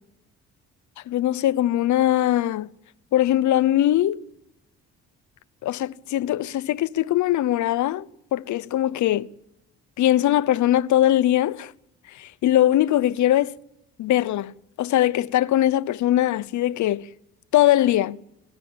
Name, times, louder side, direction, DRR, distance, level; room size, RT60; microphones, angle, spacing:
voice 1, 1.1-2.7 3.1-4.2 5.6-8.1 8.3-9.3 10.0-11.7 12.1-13.5 14.0-14.5 14.8-17.1 17.5-18.2, left 13 dB, 75° left, 0.8 m, -21 dB
26.0 x 12.5 x 8.6 m
cardioid pair, 90°, 30 cm